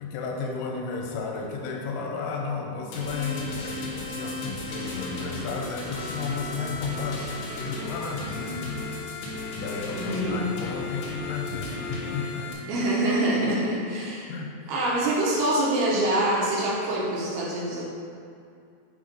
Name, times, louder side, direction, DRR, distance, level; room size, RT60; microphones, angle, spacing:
voice 1, 0.0-8.8 9.5-12.5 13.4-13.5 14.3-14.8, left 4 dB, 90° left, 1 dB, 3.1 m, -33 dB
sound 1, 2.9-12.5, left 2 dB, 70° left, 2.8 m, -35 dB
voice 2, 10.0-10.5 12.7-14.3 14.7-17.9, right 1 dB, 75° right, -5 dB, 2.7 m, -25 dB
8.0 x 3.4 x 5.3 m, 2.4 s
omnidirectional pair, 5.3 m